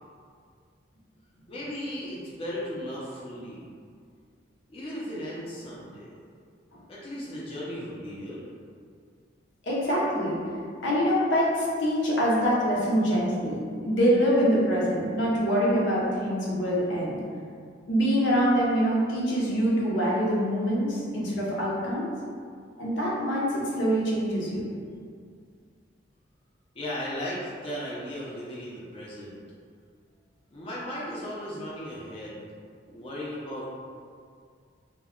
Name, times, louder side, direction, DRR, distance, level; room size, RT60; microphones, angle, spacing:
voice 1, 1.5-3.7 4.7-6.1 6.9-8.4 26.7-29.4 30.5-32.4 32.9-33.7, equal, 30° left, -7 dB, 0.5 m, -36 dB
voice 2, 9.6-10.4 10.8-17.2 17.9-22.1 22.8-24.7, equal, 85° left, -5 dB, 0.7 m, -25 dB
2.2 x 2.2 x 3.5 m, 2.2 s
head